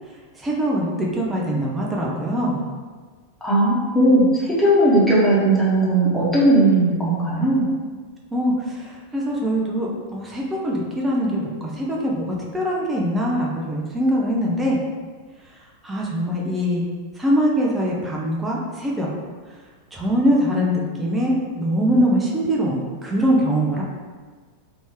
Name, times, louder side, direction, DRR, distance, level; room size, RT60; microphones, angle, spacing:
voice 1, 0.3-2.6 8.3-14.8 15.5-15.6 15.8-16.8 17.2-19.1 19.9-23.8, equal, 10° right, -3 dB, 0.5 m, -22 dB
voice 2, 3.4-7.7, right 1 dB, 5° left, -8 dB, 1.2 m, -17 dB
3.4 x 2.7 x 3.1 m, 1.5 s
figure-of-eight pair, 90°, 0 cm